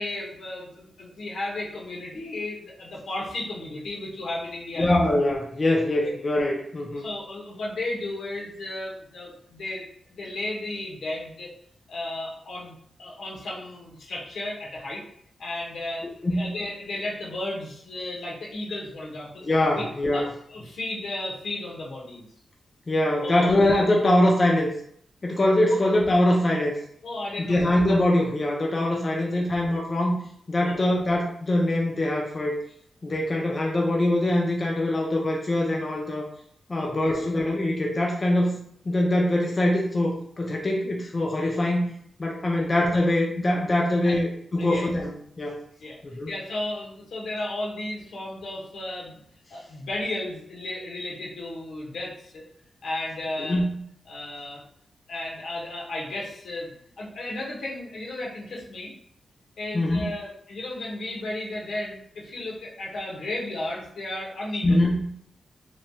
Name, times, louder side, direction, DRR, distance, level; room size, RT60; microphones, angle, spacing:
voice 1, 0.0-4.9 6.0-6.1 6.9-9.8 10.1-11.5 11.9-15.0 15.4-19.4 19.7-22.3 23.2-23.5 25.7-25.8 27.0-27.7 29.3-29.4 30.6-30.8 36.8-37.2 42.6-42.7 43.8-44.2 44.6-44.9 45.8-46.0 46.3-49.2 49.5-52.4 52.8-53.6 54.1-54.6 55.1-58.9 59.6-64.9, left 2 dB, 75° left, -3 dB, 0.9 m, -34 dB
voice 2, 4.8-7.0 16.2-16.5 19.4-20.3 22.9-24.7 25.2-26.7 27.5-30.2 30.5-32.6 33.0-36.2 36.7-38.6 38.9-41.9 42.2-45.6 46.1-46.3 53.5-53.8 59.7-60.1 64.6-65.1, left 1 dB, 25° left, -1 dB, 0.3 m, -23 dB
3.0 x 2.2 x 2.7 m, 0.66 s
wide cardioid pair, 175°, 0 cm